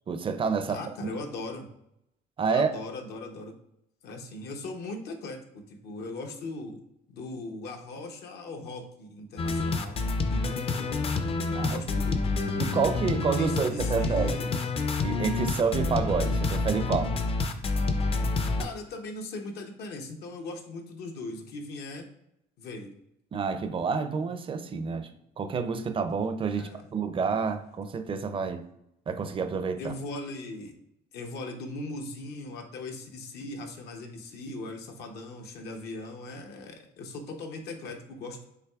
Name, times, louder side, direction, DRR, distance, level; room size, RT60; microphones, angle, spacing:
voice 1, 0.1-1.1 2.4-2.7 11.5-11.8 12.6-14.4 15.0-17.1 23.3-25.1 25.4-28.6 29.1-29.9, right 5 dB, 30° right, 9 dB, 0.4 m, -29 dB
voice 2, 0.7-1.7 2.5-3.5 4.0-6.8 7.1-10.0 10.3-11.1 11.7-12.3 13.3-14.6 18.6-22.1 22.6-23.0 26.5-26.9 29.8-30.8 31.1-38.4, left 2 dB, 70° left, 3 dB, 0.8 m, -39 dB
sound 1, 9.4-18.6, left 3 dB, 35° left, 0.4 m, -28 dB
5.7 x 3.2 x 2.3 m, 0.82 s
cardioid pair, 110°, 17 cm